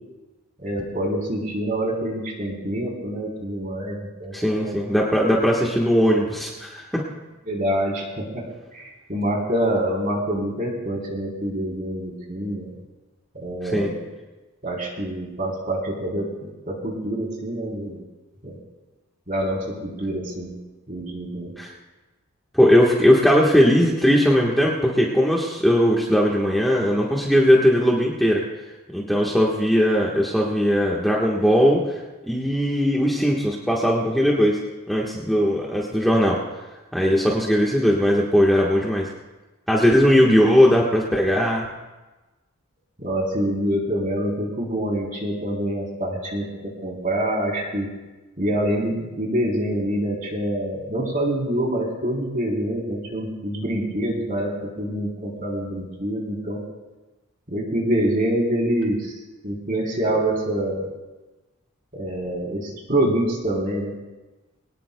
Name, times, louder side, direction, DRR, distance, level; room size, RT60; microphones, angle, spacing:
voice 1, 0.6-4.8 7.5-8.5 8.7-12.7 13.3-14.0 14.6-18.0 18.4-18.5 19.3-20.5 20.9-21.5 43.0-47.9 48.4-56.6 57.5-59.2 59.4-60.9 61.9-63.9, right 1 dB, 35° right, -1 dB, 3.5 m, -26 dB
voice 2, 4.3-7.0 13.7-13.9 21.6-21.7 22.5-28.4 28.9-32.0 32.3-34.6 34.9-36.4 36.9-39.1 39.7-41.7, equal, ahead, -4 dB, 1.3 m, -19 dB
23.5 x 19.0 x 2.3 m, 1.2 s
head